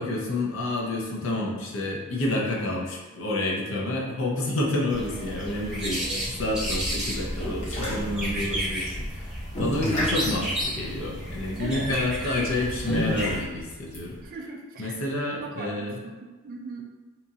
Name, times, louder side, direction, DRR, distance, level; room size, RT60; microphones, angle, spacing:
voice 1, 0.0-14.2 14.8-16.0, left 2 dB, 65° left, -2 dB, 0.6 m, -29 dB
sound 1, 4.9-13.4, equal, 5° right, 0.8 m, -32 dB
sound 2, 7.1-14.2, equal, 35° left, 0.8 m, -32 dB
voice 2, 11.6-11.9 14.2-15.0 15.4-16.8, right 3 dB, 40° right, 0 dB, 0.3 m, -39 dB
2.9 x 2.3 x 2.7 m, 1.3 s
head